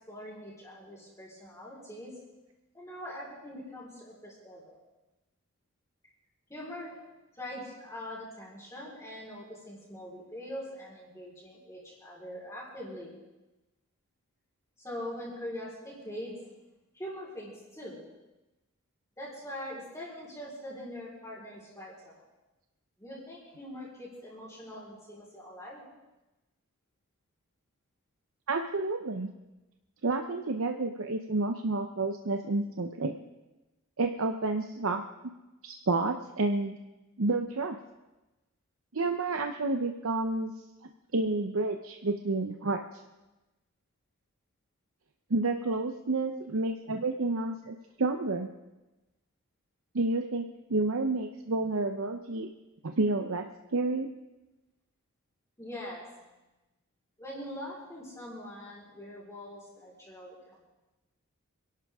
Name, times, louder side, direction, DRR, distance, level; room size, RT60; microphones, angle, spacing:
voice 1, 0.1-2.1 2.7-4.8 6.5-7.0 7.4-13.1 14.8-16.3 16.9-18.0 19.2-22.1 23.0-25.8 55.6-56.1 57.2-60.4, left 1 dB, 15° left, -7 dB, 4.2 m, -42 dB
voice 2, 28.5-29.3 30.0-33.1 34.0-35.0 35.6-36.7 37.2-37.8 38.9-40.5 41.1-42.8 45.3-48.5 49.9-52.5 52.8-53.4 53.7-54.1, right 3 dB, 75° right, 5 dB, 0.8 m, -30 dB
26.5 x 11.5 x 3.6 m, 1.0 s
head